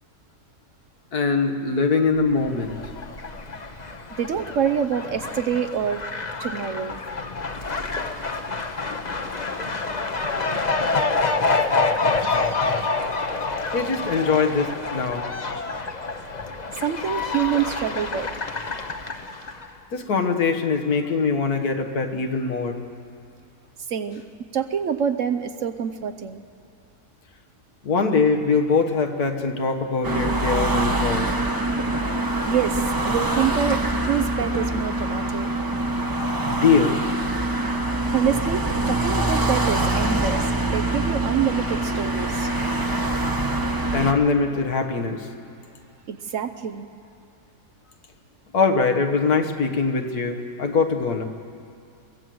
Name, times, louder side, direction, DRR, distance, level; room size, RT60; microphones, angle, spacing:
voice 1, 1.1-2.8 13.7-15.3 19.9-22.8 27.8-31.3 36.5-37.0 43.9-45.3 48.5-51.2, left 4 dB, 70° left, 4 dB, 1.9 m, -22 dB
Fowl, 2.3-19.7, left 3 dB, 30° left, 1.0 m, -27 dB
voice 2, 4.2-6.0 6.4-7.0 16.8-18.3 23.9-24.2 24.5-26.4 32.4-35.5 38.1-42.5 46.1-46.9, right 8 dB, 60° right, 9 dB, 0.9 m, -26 dB
sound 1, 30.0-44.1, right 1 dB, 15° right, 1.0 m, -24 dB
23.0 x 17.0 x 7.7 m, 2.5 s
omnidirectional pair, 1.7 m